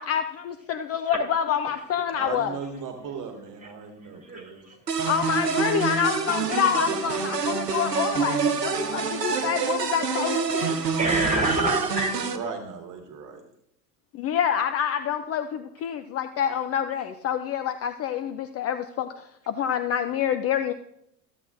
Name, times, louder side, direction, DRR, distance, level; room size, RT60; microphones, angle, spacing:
voice 1, 0.0-2.6 5.1-10.8 14.1-20.7, left 8 dB, 30° left, 9 dB, 0.5 m, -27 dB
voice 2, 2.1-4.6 12.3-13.4, right 6 dB, 40° right, 4 dB, 1.6 m, -37 dB
voice 3, 4.2-5.1 10.6-12.1, right 2 dB, 15° right, 2 dB, 3.4 m, -27 dB
sound 1, 4.9-12.4, right 5 dB, 90° right, 0.9 m, -27 dB
15.0 x 7.9 x 2.6 m, 0.75 s
figure-of-eight pair, 75°, 47 cm